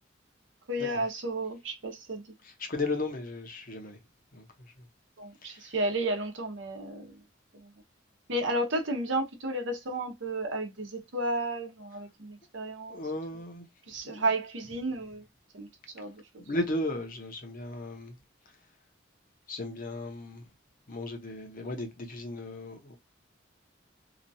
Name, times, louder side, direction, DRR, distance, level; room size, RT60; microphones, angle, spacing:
voice 1, 0.7-2.2 5.2-7.2 7.5-7.7 8.3-13.0 13.9-15.3 15.5-15.7 15.9-16.4, right 1 dB, 70° right, 0.9 m, -32 dB
voice 2, 2.4-4.0 4.3-4.5 4.8-4.9 5.4-5.7 12.9-13.7 14.0-14.2 16.4-18.1 19.5-20.5 20.9-23.0, left 2 dB, 45° left, 0.8 m, -35 dB
2.9 x 2.4 x 2.6 m
head